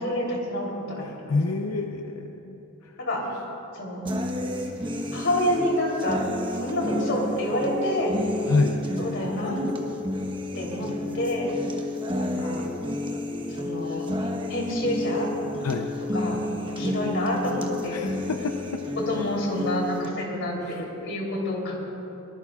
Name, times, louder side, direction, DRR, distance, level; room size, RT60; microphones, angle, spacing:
voice 1, 0.0-1.4 3.0-3.2 3.7-4.0 5.1-6.3 6.6-8.1 9.0-9.7 10.5-11.6 12.2-12.6 13.5-15.3 16.1-16.4 16.7-18.0 19.0-21.8, left 1 dB, 55° left, -2 dB, 3.5 m, -28 dB
voice 2, 1.0-3.0 3.3-3.4 8.4-8.8 15.6-15.9 17.9-18.8 20.6-20.8, left 3 dB, 85° left, 4 dB, 0.7 m, -28 dB
sound 1, 4.1-20.1, left 1 dB, 20° right, 1.1 m, -31 dB
23.5 x 19.0 x 2.4 m, 3.0 s
head